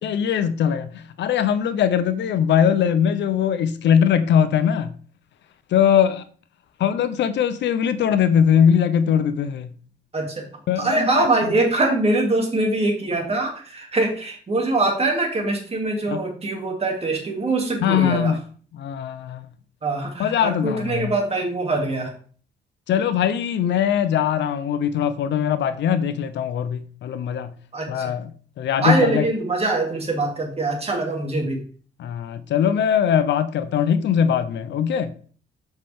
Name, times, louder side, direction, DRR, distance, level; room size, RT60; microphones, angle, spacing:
voice 1, 0.0-4.9 5.7-6.2 6.8-9.7 10.7-11.5 16.1-16.2 17.8-18.4 18.7-19.4 20.2-21.1 22.9-27.5 27.9-29.3 32.0-35.1, left 8 dB, 75° left, 0.8 m, -21 dB
voice 2, 10.1-10.4 10.8-18.3 19.8-22.1 27.7-28.1 28.8-31.6, right 2 dB, 35° right, 2.8 m, -23 dB
8.1 x 5.8 x 3.6 m
cardioid pair, 100°, 19 cm